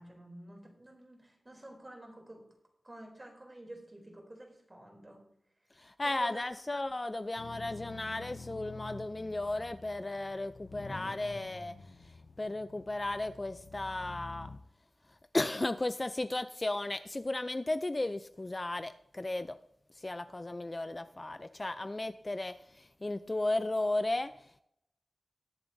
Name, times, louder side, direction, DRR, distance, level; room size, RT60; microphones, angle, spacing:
voice 1, 0.0-2.5 2.8-5.3 6.0-6.4, right 1 dB, 25° right, 3.2 m, -50 dB
voice 2, 5.8-11.8 12.4-14.5 15.3-19.6 20.0-24.3, left 2 dB, 25° left, 0.4 m, -35 dB
sound 1, 7.4-14.6, left 3 dB, 60° left, 0.8 m, -49 dB
21.0 x 7.1 x 2.7 m
wide cardioid pair, 100°, 0 cm